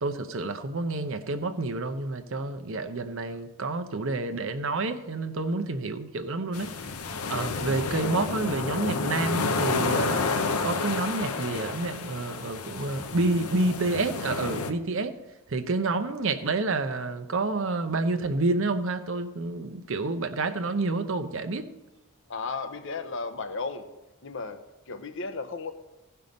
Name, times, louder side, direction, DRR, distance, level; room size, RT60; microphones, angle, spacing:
voice 1, 0.0-6.7 7.3-10.2 10.6-15.1 15.5-21.7, right 3 dB, 60° right, 8 dB, 0.8 m, -29 dB
sound 1, 6.5-14.7, left 4 dB, 90° left, 0.8 m, -30 dB
voice 2, 22.3-23.9 24.2-25.7, left 4 dB, 60° left, 9 dB, 0.8 m, -34 dB
15.5 x 5.6 x 5.3 m, 1.0 s
head